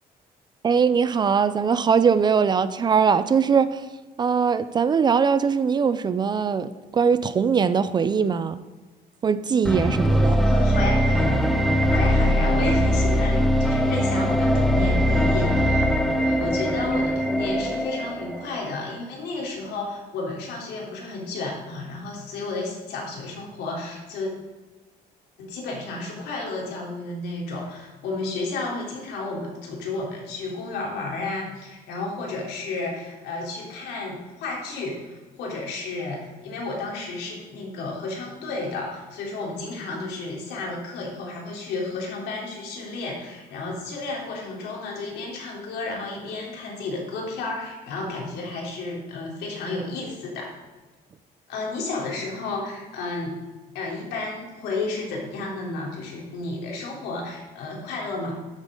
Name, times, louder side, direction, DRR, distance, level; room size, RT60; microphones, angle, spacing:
voice 1, 0.6-3.8 4.2-8.6 9.2-10.4, right 6 dB, 25° right, 0.4 m, -21 dB
sound 1, 9.7-18.7, equal, ahead, 0.8 m, -21 dB
voice 2, 10.4-11.4 11.9-15.9 16.2-24.3 25.4-50.5 51.5-53.4 53.7-58.4, left 3 dB, 90° left, 3.4 m, -32 dB
12.5 x 9.1 x 3.8 m
cardioid pair, 160°, 17 cm